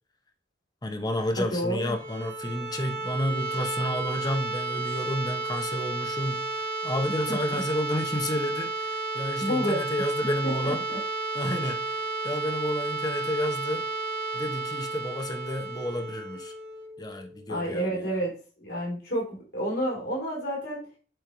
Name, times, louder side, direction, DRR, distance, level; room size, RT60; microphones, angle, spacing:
voice 1, 0.8-10.8 11.3-13.9 14.3-16.5 17.0-18.1, left 1 dB, 25° left, 4 dB, 0.9 m, -31 dB
voice 2, 1.4-1.9 7.3-7.6 9.4-10.1 10.6-11.0 17.5-20.8, equal, 80° left, -4 dB, 3.3 m, -30 dB
sound 1, 1.8-17.6, right 3 dB, 55° right, 2.3 m, -32 dB
7.8 x 3.1 x 5.1 m, 0.38 s
head